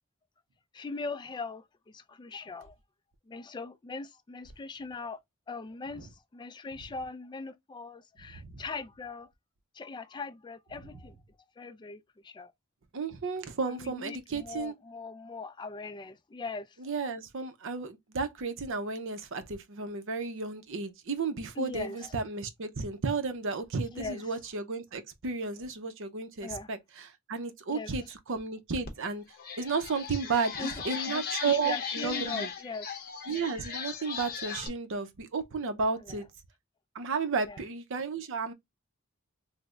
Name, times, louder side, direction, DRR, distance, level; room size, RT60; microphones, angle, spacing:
voice 1, 0.7-2.7 3.3-5.2 5.5-9.3 9.7-11.2 11.6-12.5 13.7-16.7 21.6-22.1 23.9-24.2 26.4-26.7 27.7-27.9 30.6-33.1 36.1-36.2 37.5-37.6, left 4 dB, 20° left, 0.3 m, -40 dB
voice 2, 12.9-14.7 16.8-29.2 29.6-32.5 33.3-36.3 36.9-38.5, right 4 dB, 60° right, 0.6 m, -33 dB
sound 1, 28.8-28.9 29.3-34.7, left 6 dB, 45° left, 0.7 m, -38 dB
3.2 x 2.1 x 3.6 m
head